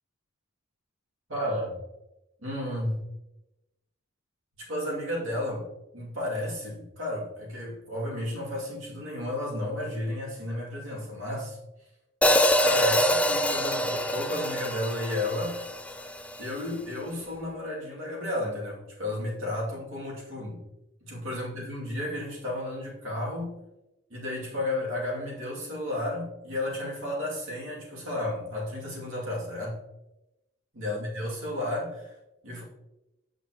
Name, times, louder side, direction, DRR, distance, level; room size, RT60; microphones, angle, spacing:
voice 1, 1.3-1.8 2.4-3.0 4.6-5.7 5.9-11.6 12.6-15.6 16.4-20.6 21.0-23.6 24.1-29.8 30.7-32.1 32.4-32.6, left 1 dB, 65° right, -4 dB, 2.6 m, -32 dB
Hi-hat, 12.2-16.4, equal, 5° left, 0.3 m, -25 dB
8.0 x 6.4 x 3.0 m, 0.94 s
head